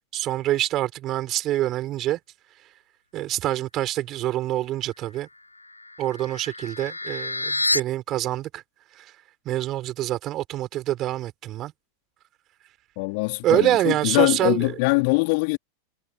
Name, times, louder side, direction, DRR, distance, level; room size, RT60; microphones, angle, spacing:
voice 1, 0.1-2.2 3.1-5.3 6.0-8.6 8.9-9.1 9.4-11.7 13.4-14.7, right 14 dB, 35° right, 4.7 m, -26 dB
sound 1, 5.6-7.8, left 2 dB, 85° left, 5.8 m, -29 dB
voice 2, 13.0-15.6, left 31 dB, 45° left, 3.8 m, -22 dB
figure-of-eight pair, 90°, 0 cm